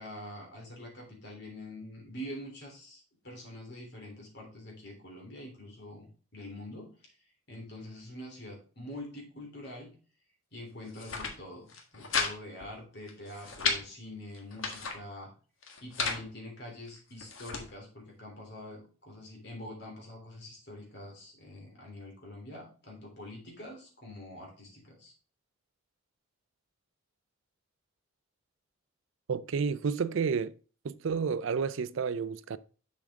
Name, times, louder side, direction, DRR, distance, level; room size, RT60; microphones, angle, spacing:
voice 1, 0.0-7.1 7.5-9.9 10.5-15.3 15.8-25.1, left 1 dB, 55° left, 3.3 m, -45 dB
sound 1, 10.8-11.3 11.7-12.3 12.6-12.7 13.1-13.8 14.3-15.0 15.6-16.2 16.9-17.6, left 4 dB, 75° left, 1.6 m, -33 dB
voice 2, 29.3-30.5 30.8-32.6, right 5 dB, 70° right, 0.4 m, -30 dB
7.0 x 6.4 x 3.6 m
head